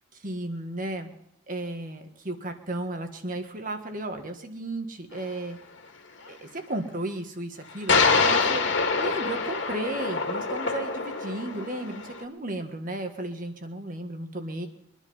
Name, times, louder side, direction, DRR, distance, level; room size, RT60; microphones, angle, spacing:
voice 1, 0.2-1.1 1.5-5.6 6.3-14.7, right 2 dB, 45° right, 6 dB, 1.6 m, -34 dB
sound 1, 5.1-5.2 7.9-12.2, left 4 dB, 75° left, 2.1 m, -25 dB
23.0 x 10.5 x 5.6 m, 0.80 s
head